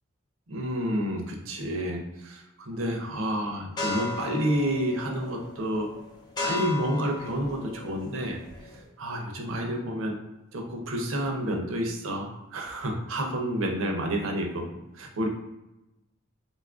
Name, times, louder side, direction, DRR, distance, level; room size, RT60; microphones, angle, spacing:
voice 1, 0.5-5.9 6.4-8.4 9.0-10.2 10.5-14.7 14.9-15.3, equal, 70° right, 2 dB, 0.6 m, -29 dB
sound 1, 3.8-8.8, left 3 dB, 20° left, 0.6 m, -36 dB
3.9 x 2.3 x 2.4 m, 0.93 s
head